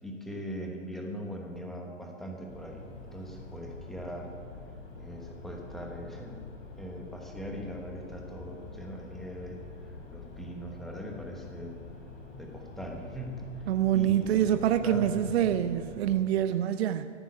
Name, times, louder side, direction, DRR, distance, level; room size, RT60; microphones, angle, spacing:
voice 1, 0.0-2.8 3.1-4.3 5.0-6.4 6.8-9.6 10.1-11.8 12.4-13.7 13.9-15.6, equal, ahead, 1 dB, 1.1 m, -40 dB
sound 1, 2.5-16.2, left 3 dB, 50° left, 3.2 m, -46 dB
voice 2, 13.7-17.0, right 11 dB, 60° right, 9 dB, 0.6 m, -26 dB
14.0 x 6.1 x 8.4 m, 2.3 s
hypercardioid pair, 145°, 37 cm